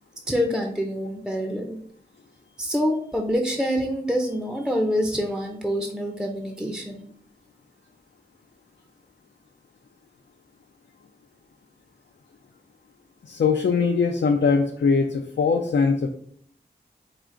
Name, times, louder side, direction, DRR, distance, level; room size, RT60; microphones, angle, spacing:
voice 1, 0.3-1.8 2.6-7.1, equal, 5° right, 2 dB, 0.6 m, -26 dB
voice 2, 13.3-16.1, left 5 dB, 85° left, 3 dB, 0.4 m, -21 dB
4.8 x 2.4 x 3.7 m, 0.62 s
wide cardioid pair, 55°, 18 cm